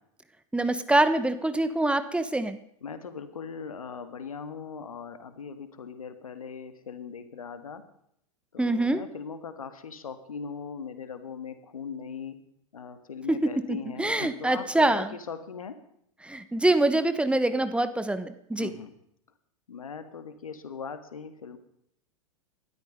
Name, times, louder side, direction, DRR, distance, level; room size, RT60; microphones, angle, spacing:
voice 1, 0.5-2.6 8.6-9.0 13.3-15.2 16.2-18.7, right 2 dB, 5° right, 12 dB, 1.2 m, -25 dB
voice 2, 2.8-7.8 8.5-12.4 12.7-15.8 18.6-18.9 19.7-21.6, left 6 dB, 85° left, 10 dB, 1.9 m, -39 dB
19.5 x 13.0 x 5.3 m, 0.73 s
hypercardioid pair, 100°, 18 cm